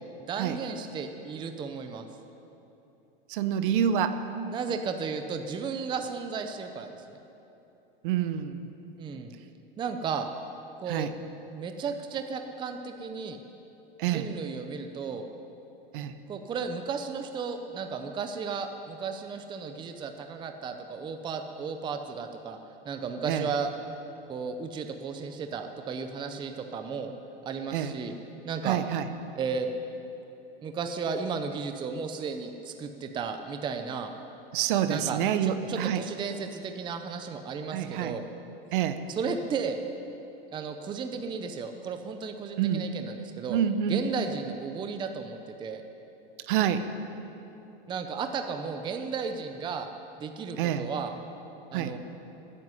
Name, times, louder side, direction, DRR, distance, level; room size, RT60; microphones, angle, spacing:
voice 1, 0.2-2.0 4.5-7.2 9.0-9.3 9.8-10.3 10.8-11.1 11.5-13.4 14.1-15.3 16.3-22.6 22.8-23.7 24.3-27.1 27.4-28.1 28.4-28.8 29.3-29.7 30.6-34.1 34.9-38.2 39.1-39.8 40.5-43.6 43.9-45.8 47.9-49.9 50.2-51.1 51.7-52.0, right 5 dB, 15° right, 6 dB, 0.7 m, -34 dB
voice 2, 3.3-4.2 8.0-8.6 10.9-11.1 14.0-14.3 15.9-16.1 23.3-23.5 27.7-27.9 28.6-29.1 34.5-36.0 37.7-38.1 38.7-39.0 42.6-42.8 43.5-44.0 46.5-46.9 50.6-50.9 51.7-51.9, right 9 dB, 60° right, 10 dB, 1.0 m, -27 dB
13.0 x 9.6 x 9.6 m, 3.0 s
supercardioid pair, 140°, 29 cm